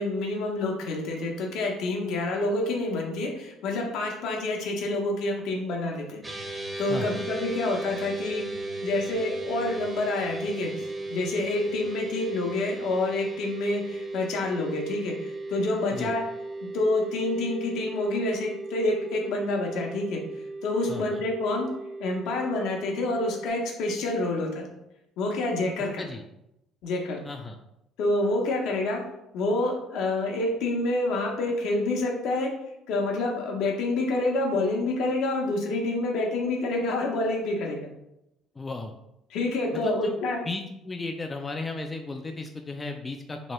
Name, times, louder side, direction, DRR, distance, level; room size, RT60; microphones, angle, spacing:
voice 1, 0.0-8.5 8.8-10.7 11.1-16.2 16.7-20.2 20.6-21.7 22.0-24.7 25.2-26.0 26.8-27.2 28.0-29.0 29.3-32.5 32.9-37.9 39.3-40.4, left 2 dB, 70° left, 1 dB, 0.7 m, -28 dB
sound 1, 6.2-23.5, right 2 dB, 15° right, 0.8 m, -36 dB
voice 2, 6.9-7.2 15.9-16.1 20.9-21.2 26.0-26.2 27.2-27.6 38.6-38.9 39.8-40.1 40.5-43.5, left 3 dB, 25° left, 4 dB, 0.3 m, -35 dB
2.9 x 2.2 x 3.0 m, 0.84 s
hypercardioid pair, 65°, 0 cm